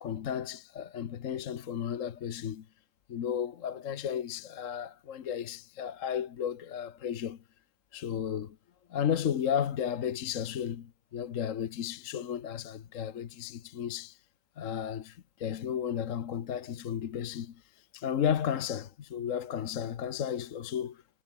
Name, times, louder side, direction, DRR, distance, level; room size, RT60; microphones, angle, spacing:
voice 1, 0.0-2.7 3.1-7.4 7.9-8.6 8.9-14.2 14.6-17.6 17.9-21.0, left 9 dB, 55° left, 1.2 m, -33 dB
omnidirectional pair, 1.8 m